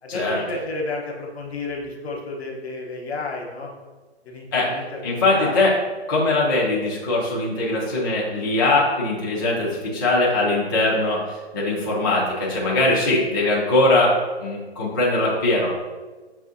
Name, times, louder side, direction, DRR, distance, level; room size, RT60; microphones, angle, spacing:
voice 1, 0.0-3.7 4.2-5.0 5.3-5.6, left 2 dB, 65° left, 0 dB, 1.0 m, -31 dB
voice 2, 5.0-5.7 6.1-14.1 14.4-15.7, left 2 dB, 20° left, -5 dB, 0.5 m, -21 dB
6.1 x 2.4 x 2.5 m, 1.3 s
figure-of-eight pair, 140°, 34 cm